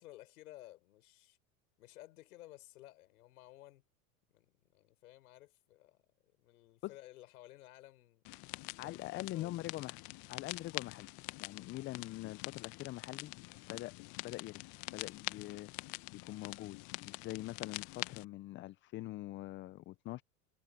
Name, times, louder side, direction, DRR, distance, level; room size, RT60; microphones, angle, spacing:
voice 1, 0.0-1.4 1.8-3.8 4.3-8.2 8.8-9.5, left 16 dB, 75° left, 6.5 m, -56 dB
sound 1, 8.2-18.2, left 25 dB, 50° left, 1.1 m, -45 dB
voice 2, 8.8-10.0 10.3-11.1 11.4-13.3 13.7-13.9 14.2-14.6 14.9-20.2, left 16 dB, 25° left, 0.4 m, -44 dB
hypercardioid pair, 100°, 45 cm